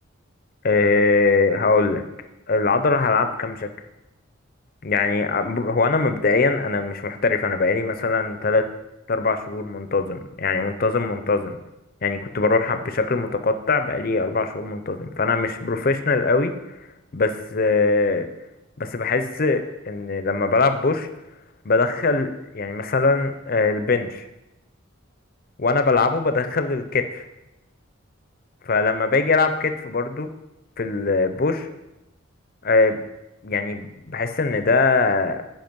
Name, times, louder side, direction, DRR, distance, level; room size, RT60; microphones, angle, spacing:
voice 1, 0.6-2.0 2.5-3.7 4.8-8.7 9.1-11.6 12.0-16.5 17.1-18.3 18.8-21.1 21.6-24.2 25.6-27.2 28.6-30.3 30.8-31.7 32.6-33.0 33.4-35.4, left 3 dB, 45° left, 9 dB, 0.6 m, -22 dB
7.9 x 5.1 x 5.3 m, 0.94 s
head